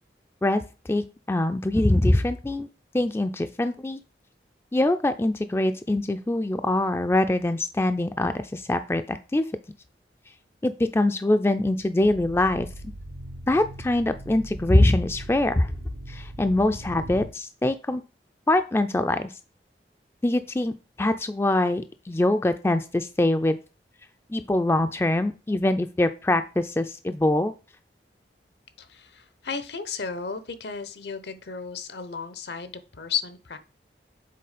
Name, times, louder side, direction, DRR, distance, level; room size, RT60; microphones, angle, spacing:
voice 1, 0.9-2.7 2.9-4.0 4.7-9.5 10.6-12.7 13.5-15.7 16.1-18.0 18.5-19.3 20.2-23.6 24.3-27.5, left 1 dB, 15° left, 9 dB, 0.3 m, -23 dB
sound 1, 12.0-17.3, right 1 dB, 70° right, 1.1 m, -40 dB
voice 2, 28.8-33.6, left 6 dB, 70° left, 12 dB, 0.8 m, -34 dB
6.8 x 4.0 x 5.0 m, 0.32 s
head